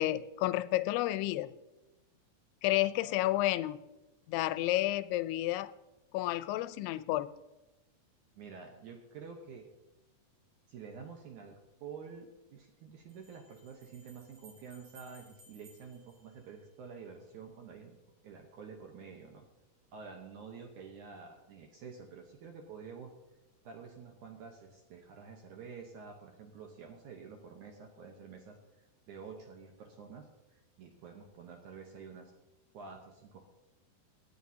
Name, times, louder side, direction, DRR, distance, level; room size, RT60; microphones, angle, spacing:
voice 1, 0.0-1.5 2.6-3.8 4.3-5.7 6.1-7.3, left 15 dB, 85° left, 15 dB, 2.6 m, -31 dB
voice 2, 8.4-9.7 10.7-18.0 18.2-19.5 19.9-23.1 23.6-32.3 32.7-33.5, right 5 dB, 70° right, 3 dB, 1.9 m, -49 dB
sound 1, 11.5-11.6 13.1-17.1, right 2 dB, 40° right, 5.4 m, -61 dB
18.0 x 11.0 x 2.8 m, 1.0 s
omnidirectional pair, 4.6 m